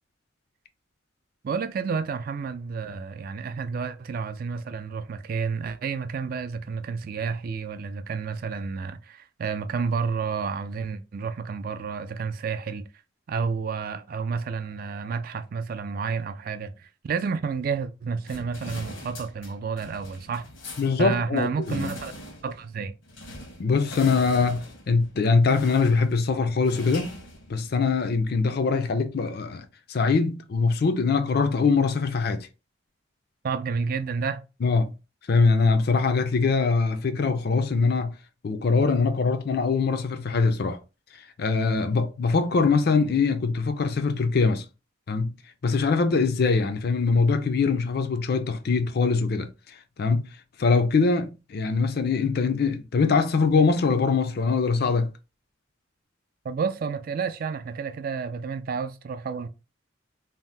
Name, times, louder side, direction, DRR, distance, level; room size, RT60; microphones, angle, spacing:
voice 1, 1.4-12.9 13.3-20.4 21.0-22.1 22.4-22.9 33.4-34.4 56.4-59.5, right 5 dB, 50° right, 0.3 m, -30 dB
sound 1, 18.2-28.0, left 2 dB, 80° left, 1.0 m, -43 dB
voice 2, 20.8-21.9 23.6-27.1 27.5-32.5 34.6-34.9 35.3-38.1 38.4-40.8 41.1-44.6 45.1-45.3 45.6-50.3 50.6-55.1, left 4 dB, 55° left, 0.4 m, -23 dB
2.7 x 2.1 x 3.2 m
head